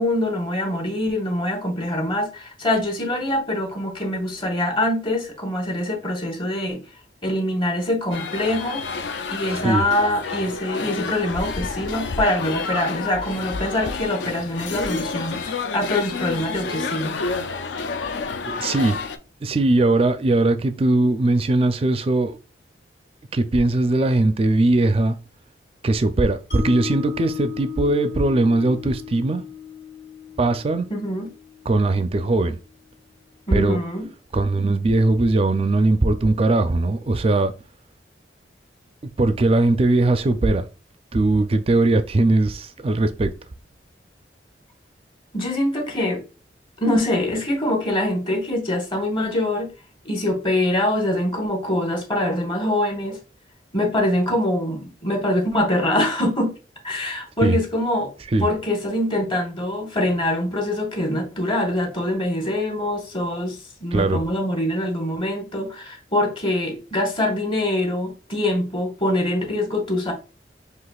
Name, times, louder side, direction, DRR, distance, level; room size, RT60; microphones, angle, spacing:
voice 1, 0.0-6.8 7.2-8.8 9.3-17.1 30.9-31.3 33.5-34.1 45.3-46.2 46.8-49.7 50.0-53.2 53.7-56.5 56.8-58.1 58.4-70.1, left 1 dB, 30° left, 1.0 m, -24 dB
sound 1, 8.1-19.2, left 4 dB, 80° left, 0.4 m, -29 dB
voice 2, 18.5-19.0 19.4-22.4 23.3-25.2 25.8-29.4 30.4-30.9 31.7-32.6 33.5-33.8 34.3-37.5 39.2-40.7 41.1-43.3 57.4-57.6 58.3-58.5 63.9-64.2, right 2 dB, 30° right, 0.4 m, -20 dB
Mallet percussion, 26.5-32.7, left 8 dB, 50° left, 1.4 m, -36 dB
5.8 x 2.8 x 2.3 m
head